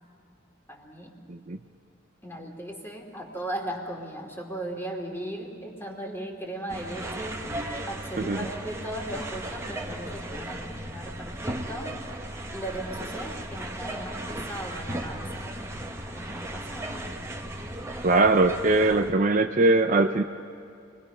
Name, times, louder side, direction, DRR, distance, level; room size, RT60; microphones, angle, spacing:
voice 1, 0.7-1.2 2.2-7.4 7.9-12.0 12.5-15.5 16.1-17.0, right 1 dB, 10° left, 0 dB, 2.8 m, -37 dB
sound 1, 6.7-19.1, right 1 dB, 15° right, 1.4 m, -36 dB
voice 2, 18.0-20.2, right 2 dB, 40° right, 6 dB, 0.6 m, -21 dB
28.5 x 21.5 x 5.6 m, 2.5 s
head